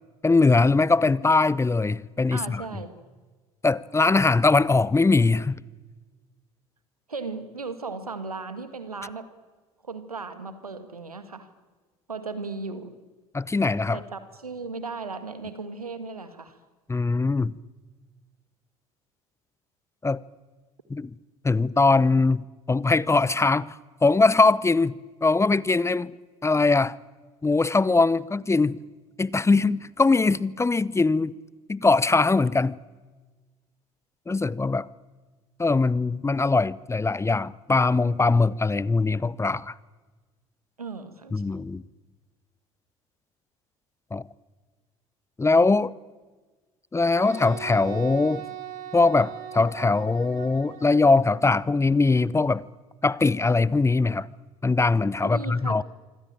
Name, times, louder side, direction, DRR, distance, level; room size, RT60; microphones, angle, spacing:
voice 1, 0.2-2.6 3.6-5.6 13.3-14.0 16.9-17.6 20.0-20.2 20.9-21.1 21.4-26.1 26.4-27.0 27.4-28.8 29.2-31.4 31.7-32.8 34.3-34.9 35.6-39.7 41.3-41.8 44.1-44.2 45.4-45.9 46.9-48.4 48.9-52.6 53.0-54.3 54.6-55.8, left 3 dB, 15° left, 0.8 m, -21 dB
voice 2, 2.3-2.9 7.1-9.3 9.8-11.5 12.1-13.0 13.9-16.6 40.8-41.4 55.2-55.8, right 4 dB, 90° right, 2.0 m, -36 dB
Wind instrument woodwind instrument, 47.2-51.4, right 10 dB, 50° right, 3.5 m, -39 dB
25.5 x 25.5 x 8.9 m
figure-of-eight pair, 65°, 18 cm